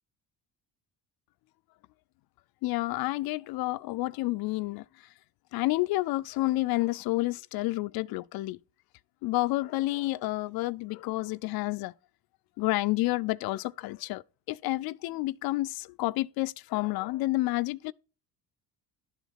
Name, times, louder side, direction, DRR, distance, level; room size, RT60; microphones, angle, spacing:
voice 1, 2.6-4.8 5.5-8.6 9.2-11.9 12.6-14.2 14.5-17.9, left 19 dB, 75° left, 0.5 m, -29 dB
11.5 x 4.1 x 7.4 m
cardioid pair, 110°, 37 cm